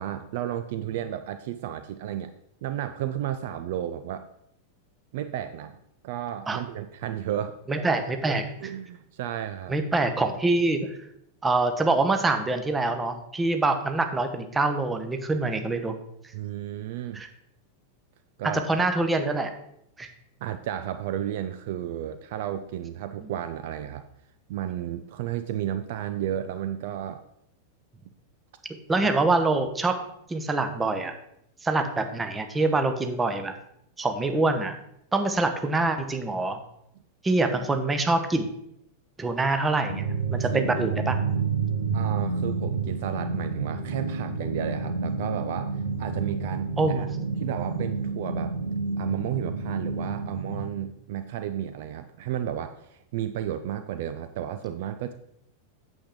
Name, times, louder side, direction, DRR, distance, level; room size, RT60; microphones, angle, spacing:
voice 1, 0.0-2.3 2.6-4.3 5.1-5.8 6.0-7.5 8.6-9.8 16.3-17.2 18.4-18.6 20.4-24.0 24.5-27.2 40.4-40.6 41.9-47.1 47.4-48.5 49.0-55.1, right 11 dB, 50° right, 10 dB, 0.4 m, -32 dB
voice 2, 7.7-8.7 9.7-10.9 11.4-16.0 17.1-17.3 18.7-19.5 20.0-20.1 28.9-29.9 30.3-31.1 31.6-33.5 34.0-34.7 35.1-36.6 37.2-38.5 39.2-41.2 46.8-47.1, right 2 dB, 15° right, 6 dB, 0.9 m, -25 dB
sound 1, 39.9-50.7, right 4 dB, 75° right, 1.9 m, -29 dB
8.5 x 7.1 x 3.7 m, 0.76 s
figure-of-eight pair, 90°, 0 cm